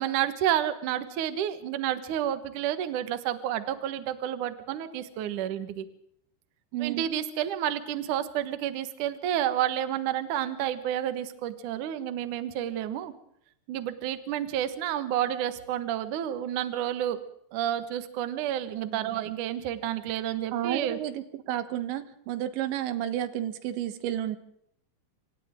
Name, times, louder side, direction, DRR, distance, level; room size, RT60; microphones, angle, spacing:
voice 1, 0.0-5.9 6.8-13.1 13.7-17.2 17.5-21.0, right 11 dB, 60° right, 10 dB, 2.2 m, -30 dB
voice 2, 6.7-7.1 18.8-19.2 20.5-24.4, right 12 dB, 80° right, 11 dB, 3.5 m, -32 dB
27.0 x 26.5 x 3.7 m, 0.72 s
omnidirectional pair, 5.3 m